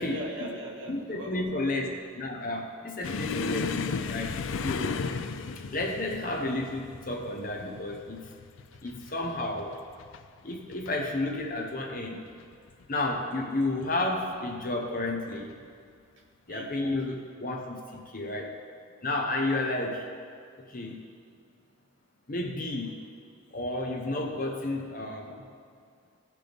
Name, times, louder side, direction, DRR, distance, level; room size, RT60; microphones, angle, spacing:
voice 1, 0.0-1.7 8.8-8.9 16.2-16.7, right 1 dB, 60° right, 0 dB, 1.2 m, -40 dB
voice 2, 0.9-4.3 4.6-5.0 5.7-8.2 8.8-9.8 10.4-12.2 12.9-15.5 16.5-18.5 19.0-20.1 20.7-21.0 22.3-23.0 23.5-25.4, left 2 dB, 40° left, 2 dB, 0.9 m, -31 dB
sound 1, 3.0-10.2 10.5-10.9 11.3-11.4 12.3-12.8 13.8-14.0 15.4-15.5, left 5 dB, 65° left, 0.4 m, -35 dB
16.0 x 5.9 x 3.5 m, 2.1 s
head